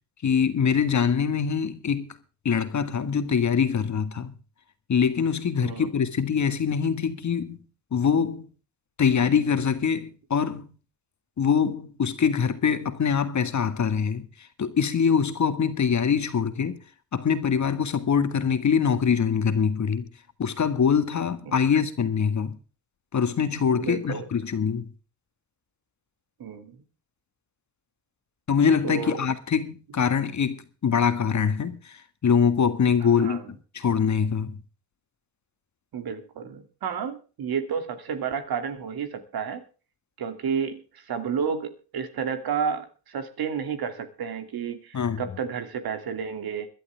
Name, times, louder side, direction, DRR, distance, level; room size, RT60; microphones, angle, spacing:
voice 1, 0.2-2.2 2.5-4.3 4.9-7.6 7.9-8.5 9.0-10.7 11.4-14.3 14.6-16.8 17.1-20.1 20.4-22.6 23.1-24.9 28.5-33.4 33.7-34.6 44.9-45.2, left 6 dB, 45° left, 1.8 m, -24 dB
voice 2, 23.8-24.3 26.4-26.8 28.8-29.2 33.2-33.5 35.9-39.6 40.2-46.7, right 7 dB, 70° right, 2.6 m, -31 dB
21.5 x 11.5 x 3.4 m
cardioid pair, 80°, 38 cm